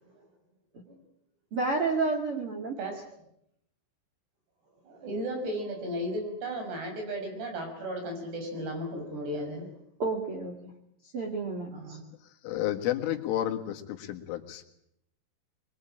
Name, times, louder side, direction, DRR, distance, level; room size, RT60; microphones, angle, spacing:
voice 1, 1.5-2.8 10.0-10.5 11.1-11.7, right 3 dB, 40° right, 2 dB, 2.2 m, -29 dB
voice 2, 4.8-9.8 11.7-12.0, equal, 60° right, 4 dB, 7.8 m, -35 dB
voice 3, 12.4-14.6, left 12 dB, 90° left, 4 dB, 4.3 m, -31 dB
23.5 x 22.5 x 8.8 m, 0.78 s
omnidirectional pair, 5.5 m